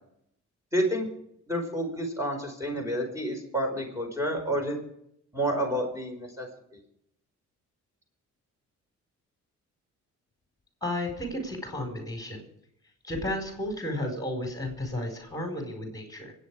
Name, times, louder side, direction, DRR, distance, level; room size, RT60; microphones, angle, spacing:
voice 1, 0.7-1.1 1.5-4.8 5.3-6.5, right 1 dB, 10° right, 2 dB, 5.1 m, -29 dB
voice 2, 10.8-12.4 13.0-16.3, left 1 dB, 10° left, 3 dB, 4.8 m, -33 dB
24.5 x 9.4 x 4.9 m, 0.74 s
cardioid pair, 85°, 30 cm